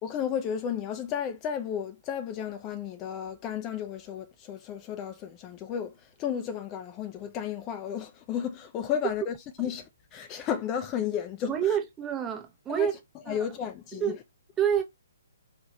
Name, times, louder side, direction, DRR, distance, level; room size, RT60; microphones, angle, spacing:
voice 1, 0.0-11.8 12.7-12.9 13.3-14.2, left 8 dB, 25° left, 0.5 m, -33 dB
voice 2, 11.5-12.9 13.3-13.4 13.9-14.2 14.6-14.8, right 9 dB, 15° right, 0.9 m, -27 dB
4.8 x 2.4 x 3.0 m
figure-of-eight pair, 135°, 0 cm